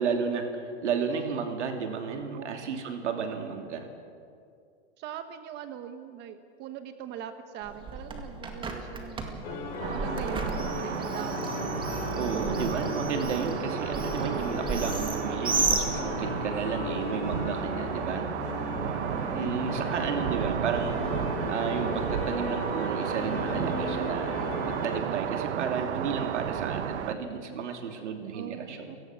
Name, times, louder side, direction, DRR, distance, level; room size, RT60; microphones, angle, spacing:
voice 1, 0.0-3.9 9.8-10.1 10.4-10.5 12.2-18.3 19.4-28.9, right 6 dB, 85° right, 4 dB, 3.0 m, -33 dB
voice 2, 5.0-11.5 16.0-16.5 18.7-19.7 28.3-29.0, right 9 dB, 30° right, 9 dB, 1.0 m, -42 dB
Bird, 7.6-16.5, right 3 dB, 15° right, 2.0 m, -34 dB
sound 1, 9.4-25.0, left 3 dB, 55° left, 4.6 m, -36 dB
sound 2, 9.8-27.1, right 10 dB, 70° right, 1.3 m, -33 dB
30.0 x 18.0 x 6.2 m, 2.4 s
supercardioid pair, 145°, 34 cm